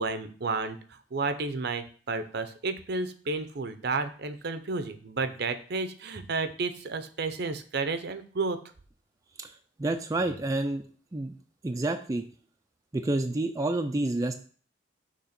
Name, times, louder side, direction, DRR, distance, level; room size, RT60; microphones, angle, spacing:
voice 1, 0.0-8.6, right 3 dB, 60° right, 10 dB, 0.6 m, -32 dB
voice 2, 9.4-10.8 11.1-11.3 11.6-12.2 12.9-14.3, right 2 dB, 20° right, 5 dB, 0.4 m, -29 dB
6.7 x 3.0 x 5.8 m, 0.43 s
head